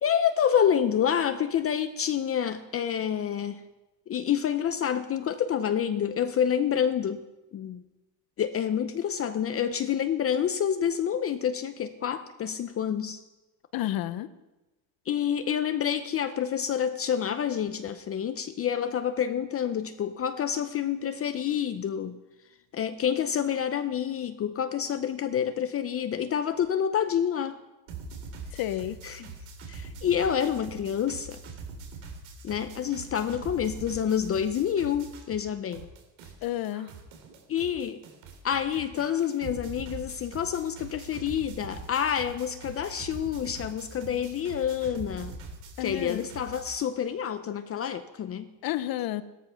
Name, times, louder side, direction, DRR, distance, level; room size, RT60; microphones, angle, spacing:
voice 1, 0.0-3.6 4.1-7.2 7.5-7.8 8.4-13.2 15.1-22.2 22.7-27.6 29.0-29.3 29.7-31.4 32.4-35.9 37.5-38.0 38.4-45.3 45.8-48.4, left 8 dB, 30° left, 10 dB, 0.6 m, -28 dB
voice 2, 13.7-14.3 28.5-29.0 36.4-36.9 45.8-46.2 48.6-49.2, left 13 dB, 50° left, 13 dB, 1.0 m, -31 dB
sound 1, 27.9-35.5 35.7-46.8, right 4 dB, 90° right, 3.8 m, -43 dB
17.0 x 13.5 x 5.7 m, 1.1 s
cardioid pair, 150°, 46 cm